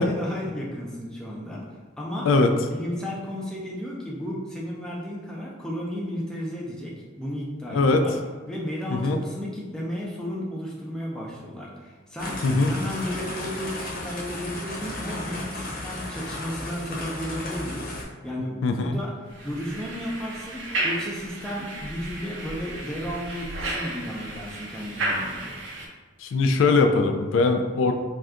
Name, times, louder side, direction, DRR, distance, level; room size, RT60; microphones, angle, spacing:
voice 1, 0.0-1.6 2.0-2.3 2.6-8.1 8.5-12.4 12.6-17.9 18.2-19.1 19.4-25.4, equal, 5° left, -4 dB, 0.4 m, -33 dB
voice 2, 7.7-8.0 8.9-9.2 12.4-12.7 18.6-19.0 26.2-27.9, left 3 dB, 85° left, 5 dB, 0.3 m, -21 dB
sound 1, 12.2-18.0, left 1 dB, 50° left, 0.8 m, -34 dB
sound 2, 19.3-25.9, right 1 dB, 85° right, 0.5 m, -33 dB
2.6 x 2.4 x 3.4 m, 1.4 s
head